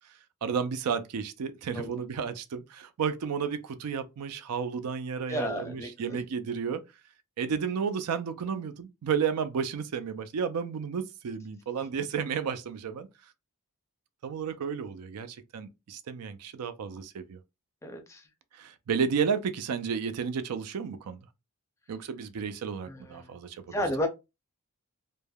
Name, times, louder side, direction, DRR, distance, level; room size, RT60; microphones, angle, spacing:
voice 1, 0.4-6.8 7.4-13.1 14.2-17.4 18.5-21.2 21.9-23.8, right 6 dB, 85° right, 0.4 m, -32 dB
voice 2, 5.3-6.2 17.8-18.2 22.9-23.3 23.7-24.1, equal, 15° left, 0.5 m, -32 dB
3.2 x 2.1 x 2.2 m
head